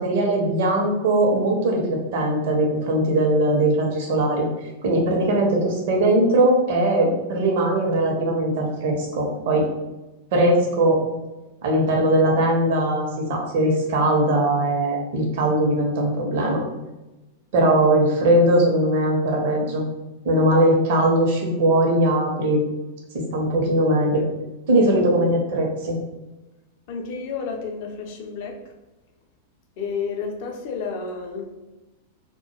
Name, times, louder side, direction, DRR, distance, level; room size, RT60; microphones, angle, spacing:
voice 1, 0.0-4.5 4.8-9.7 10.3-11.0 11.6-16.6 17.5-19.8 20.2-22.6 23.1-24.2 24.7-26.0, right 1 dB, 55° right, 0 dB, 0.6 m, -20 dB
voice 2, 26.9-28.7 29.8-31.5, left 5 dB, 50° left, 2 dB, 0.4 m, -31 dB
2.2 x 2.1 x 3.0 m, 1.1 s
figure-of-eight pair, 95°, 0 cm